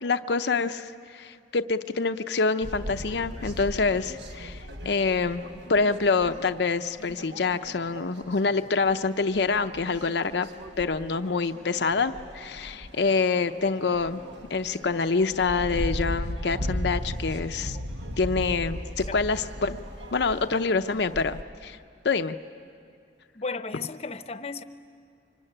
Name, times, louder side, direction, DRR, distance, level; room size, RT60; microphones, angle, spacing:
voice 1, 0.0-10.5 10.8-14.2 14.5-17.8 18.2-19.8 20.1-21.8 22.0-22.4, left 4 dB, 65° left, 9 dB, 0.6 m, -26 dB
sound 1, 2.6-21.4, equal, 80° right, 1.6 m, -37 dB
voice 2, 23.3-24.6, left 4 dB, 35° left, 11 dB, 0.8 m, -34 dB
25.5 x 23.0 x 9.9 m, 2.3 s
head